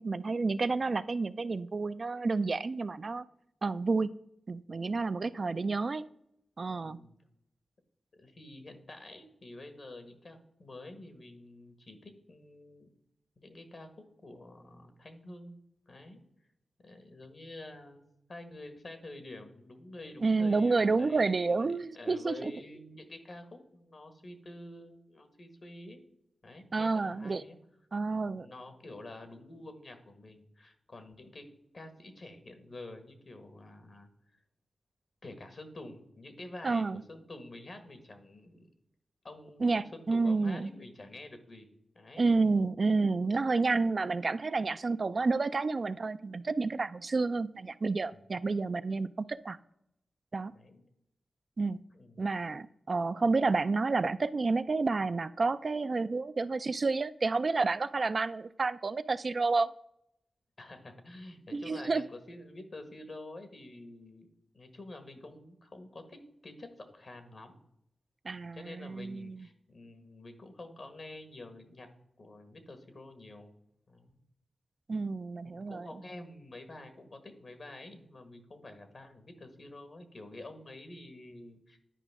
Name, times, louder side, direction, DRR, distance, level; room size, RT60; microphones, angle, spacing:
voice 1, 0.0-3.2 3.6-4.1 4.5-6.0 6.6-7.0 20.2-22.5 26.7-27.4 27.9-28.5 36.6-37.0 39.6-40.7 42.2-49.6 50.3-50.5 51.6-51.8 52.2-59.7 61.5-62.0 68.2-69.5 74.9-75.9, right 3 dB, 55° right, 12 dB, 0.4 m, -30 dB
voice 2, 6.8-7.2 8.1-12.9 13.4-15.6 15.9-16.2 16.8-18.0 18.3-26.0 26.4-27.6 28.1-31.5 31.7-34.1 35.2-38.7 39.2-41.7 41.9-42.3 48.1-48.2 50.5-50.8 51.9-52.3 60.6-64.3 64.5-67.6 68.3-71.9 72.2-73.5 73.9-74.1 75.4-81.8, left 2 dB, 60° left, 7 dB, 1.5 m, -48 dB
11.0 x 5.0 x 3.6 m, 0.80 s
cardioid pair, 45°, 0 cm